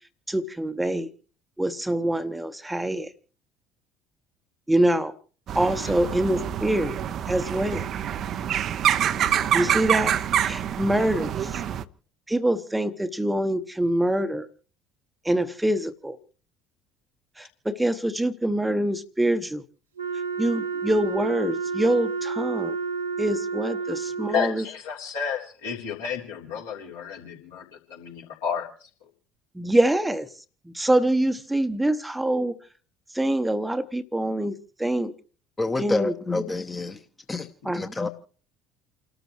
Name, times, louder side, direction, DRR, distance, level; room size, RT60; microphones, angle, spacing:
voice 1, 0.3-1.1 1.6-3.1 4.7-5.2 5.5-7.0 7.3-7.9 9.5-10.2 10.4-11.6 12.3-14.5 15.2-16.2 17.4-19.6 20.4-22.8 23.2-24.6 29.5-30.3 30.7-32.5 33.1-35.1 35.8-36.4 37.6-37.9, right 1 dB, 5° right, 0.9 m, -25 dB
sound 1, 5.5-11.8, right 10 dB, 45° right, 0.6 m, -26 dB
Wind instrument woodwind instrument, 20.0-24.6, right 5 dB, 80° right, 0.8 m, -30 dB
voice 2, 24.3-28.9 37.6-37.7, left 7 dB, 75° left, 3.6 m, -32 dB
voice 3, 35.6-37.0 37.3-37.5 37.7-38.1, left 3 dB, 20° left, 1.0 m, -28 dB
29.5 x 13.0 x 3.1 m
figure-of-eight pair, 60°, 0 cm